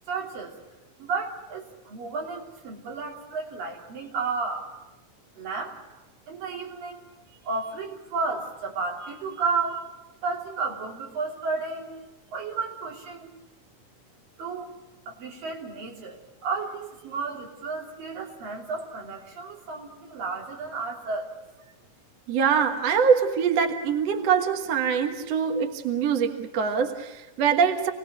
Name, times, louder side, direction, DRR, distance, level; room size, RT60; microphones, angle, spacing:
voice 1, 0.1-0.6 1.0-4.7 5.4-5.8 6.3-7.1 7.4-9.9 10.2-12.0 12.3-13.3 14.4-14.7 15.1-21.3, right 4 dB, 85° right, -1 dB, 5.0 m, -32 dB
voice 2, 22.3-27.9, right 6 dB, 55° right, 5 dB, 2.4 m, -23 dB
28.5 x 19.5 x 6.7 m, 1.1 s
omnidirectional pair, 3.9 m